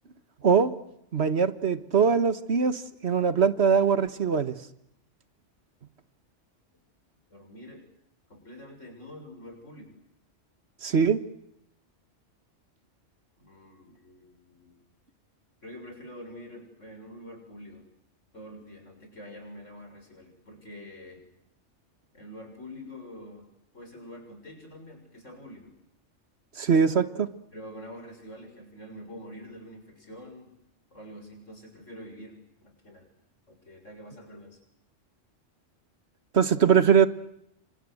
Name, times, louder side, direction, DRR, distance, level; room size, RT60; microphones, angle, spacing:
voice 1, 1.1-4.5 10.8-11.2 26.6-27.3 36.3-37.1, right 6 dB, 60° right, 1.6 m, -22 dB
voice 2, 7.3-7.9 8.3-9.9 13.4-14.8 15.6-17.9 18.3-21.3 22.1-23.5 23.7-25.7 27.5-30.6 30.9-33.0 33.5-34.6, equal, 80° left, 7.2 m, -46 dB
28.5 x 25.0 x 7.9 m
omnidirectional pair, 1.3 m